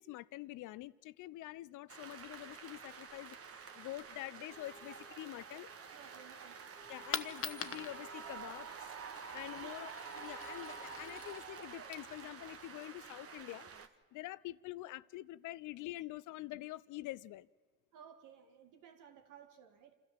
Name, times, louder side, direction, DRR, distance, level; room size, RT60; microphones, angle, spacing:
voice 1, 0.0-5.7 6.9-8.9 9.3-13.7 14.1-17.5, left 16 dB, 85° left, 0.5 m, -46 dB
sound 1, 1.9-13.9, right 6 dB, 50° right, 1.4 m, -49 dB
sound 2, 4.5-11.4, equal, 5° left, 1.0 m, -63 dB
voice 2, 5.9-6.5 9.6-9.9 17.9-20.0, right 8 dB, 85° right, 2.0 m, -57 dB
Coin (dropping), 6.8-12.8, left 7 dB, 45° left, 0.9 m, -46 dB
27.0 x 13.0 x 7.4 m
cardioid pair, 90°, 30 cm